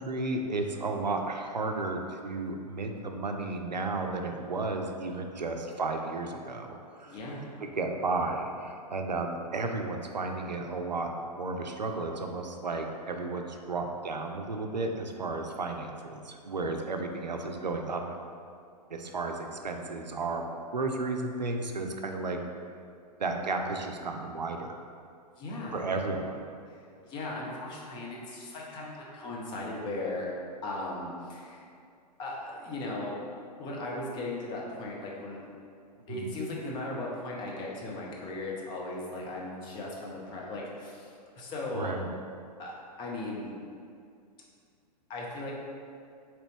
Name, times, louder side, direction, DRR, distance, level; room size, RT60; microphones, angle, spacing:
voice 1, 0.0-7.2 7.6-11.1 11.4-18.0 18.9-20.4 20.7-22.4 23.2-24.8 25.7-26.4 36.1-36.3 41.7-42.1, right 3 dB, 85° right, 4 dB, 0.4 m, -33 dB
voice 2, 7.1-7.5 25.4-25.8 26.7-30.3 30.6-31.6 32.2-33.2 33.6-35.4 36.1-42.0 42.6-42.7 43.0-43.5 45.1-45.7, left 2 dB, 20° left, -3 dB, 0.6 m, -37 dB
3.9 x 3.0 x 3.2 m, 2.3 s
figure-of-eight pair, 105°, 21 cm